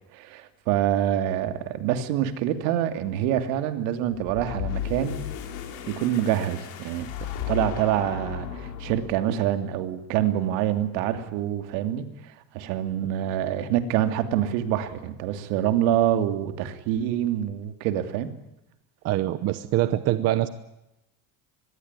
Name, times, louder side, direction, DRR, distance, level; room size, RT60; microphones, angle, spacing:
voice 1, 0.1-5.2 5.9-7.1 7.5-18.3, right 11 dB, 70° right, 9 dB, 2.8 m, -26 dB
sound 1, 4.1-9.4, left 9 dB, 55° left, 5.0 m, -34 dB
voice 2, 19.0-20.5, right 14 dB, 35° right, 12 dB, 1.0 m, -24 dB
25.0 x 21.0 x 9.8 m, 0.88 s
cardioid pair, 180°, 42 cm